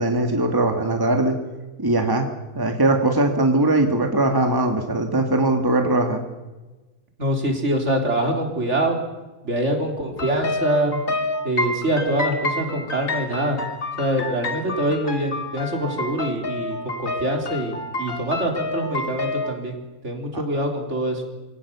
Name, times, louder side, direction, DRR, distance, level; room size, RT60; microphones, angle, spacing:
voice 1, 0.0-1.4 1.8-2.3 2.6-6.2 20.3-20.4, right 2 dB, 15° right, 4 dB, 1.9 m, -20 dB
voice 2, 7.2-9.0 9.4-11.0 11.4-13.6 14.0-19.8 20.0-21.2, right 1 dB, 50° right, 2 dB, 4.0 m, -24 dB
sound 1, 10.2-19.5, left 2 dB, 65° left, 2.9 m, -29 dB
27.0 x 17.5 x 7.0 m, 1.2 s
omnidirectional pair, 1.5 m